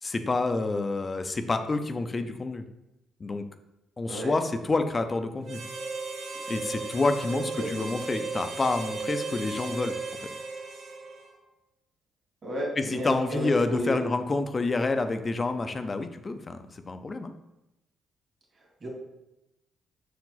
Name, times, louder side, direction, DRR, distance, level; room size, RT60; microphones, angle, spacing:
voice 1, 0.0-2.6 3.2-3.4 4.0-5.6 6.5-10.3 12.8-17.3, left 3 dB, 30° left, 8 dB, 0.6 m, -28 dB
Harmonica, 5.4-11.4, right 4 dB, 60° right, 1.2 m, -36 dB
voice 2, 7.3-7.8 12.4-14.0 18.8-18.9, equal, 40° right, -2 dB, 2.1 m, -32 dB
6.4 x 4.8 x 4.0 m, 0.94 s
cardioid pair, 90°, 0 cm